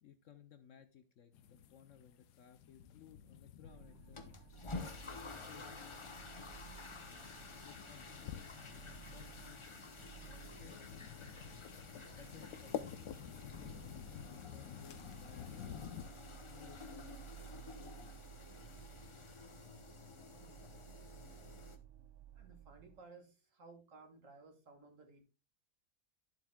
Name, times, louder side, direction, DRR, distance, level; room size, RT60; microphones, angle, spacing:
voice 1, 0.0-4.2 5.0-6.2 7.0-11.1 12.2-17.2 17.5-18.2, left 9 dB, 60° left, 10 dB, 0.9 m, -61 dB
sound 1, 1.3-16.0, left 9 dB, 80° left, 1.2 m, -51 dB
sound 2, 3.6-23.0, right 11 dB, 70° right, 1.1 m, -57 dB
sound 3, 4.1-21.8, left 3 dB, 30° left, 0.6 m, -51 dB
voice 2, 22.3-25.2, right 3 dB, 50° right, 5 dB, 1.9 m, -58 dB
11.5 x 7.4 x 2.2 m, 0.29 s
omnidirectional pair, 1.7 m